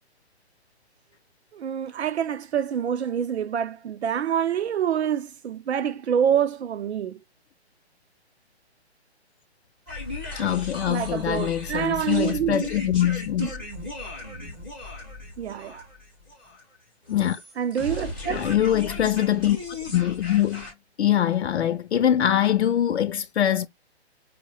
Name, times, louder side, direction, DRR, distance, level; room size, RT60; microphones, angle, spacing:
voice 1, 1.5-7.2 10.9-12.7 13.4-13.5 15.4-15.8 17.6-18.5, right 9 dB, 75° right, 0.6 m, -26 dB
sound 1, 9.9-20.7, left 2 dB, 10° right, 0.5 m, -36 dB
voice 2, 10.4-13.6 17.1-17.4 18.3-19.6 19.9-20.7 21.0-23.7, left 11 dB, 75° left, 0.5 m, -23 dB
4.8 x 2.1 x 2.8 m
hypercardioid pair, 175°, 33 cm